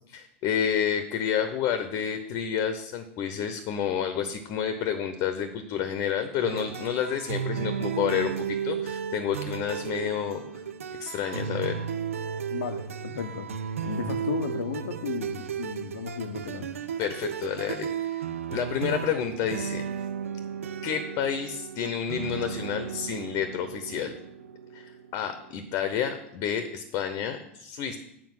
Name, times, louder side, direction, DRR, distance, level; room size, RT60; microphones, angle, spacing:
voice 1, 0.1-10.4 11.0-11.9 17.0-19.9 20.8-24.2 24.7-28.0, left 8 dB, 50° left, 8 dB, 0.8 m, -30 dB
sound 1, 6.4-25.8, right 7 dB, 85° right, 0.5 m, -34 dB
voice 2, 12.5-13.5 13.8-16.7, left 6 dB, 85° left, 4 dB, 0.7 m, -34 dB
7.5 x 4.5 x 6.1 m, 0.77 s
hypercardioid pair, 95°, 7 cm